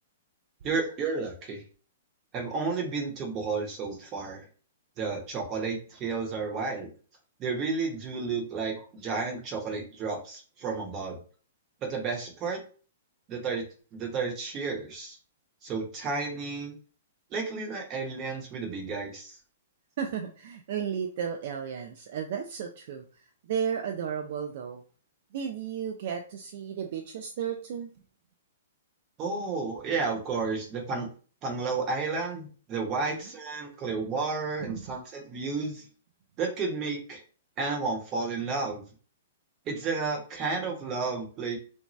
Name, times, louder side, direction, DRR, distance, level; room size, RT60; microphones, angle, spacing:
voice 1, 0.6-1.6 2.3-4.5 5.0-6.9 7.4-11.2 11.9-12.6 13.3-13.6 14.0-15.2 15.6-16.7 17.3-19.4 29.2-31.1 31.4-35.8 36.4-37.2 37.6-38.8 39.7-41.6, right 4 dB, 30° right, 2 dB, 0.9 m, -32 dB
voice 2, 20.0-23.0 23.5-24.8 25.3-27.9, right 7 dB, 55° right, 4 dB, 0.4 m, -33 dB
2.7 x 2.1 x 3.0 m, 0.39 s
hypercardioid pair, 135°, 0 cm